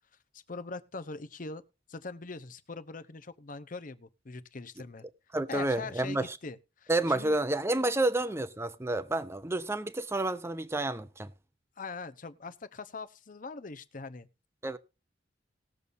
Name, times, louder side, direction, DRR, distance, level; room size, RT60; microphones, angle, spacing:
voice 1, 0.3-1.6 1.9-5.1 5.5-7.4 11.8-14.3, left 3 dB, 45° left, 0.7 m, -42 dB
voice 2, 5.3-6.4 6.9-11.3 14.6-14.8, right 2 dB, 15° right, 0.6 m, -30 dB
20.0 x 6.9 x 2.6 m
head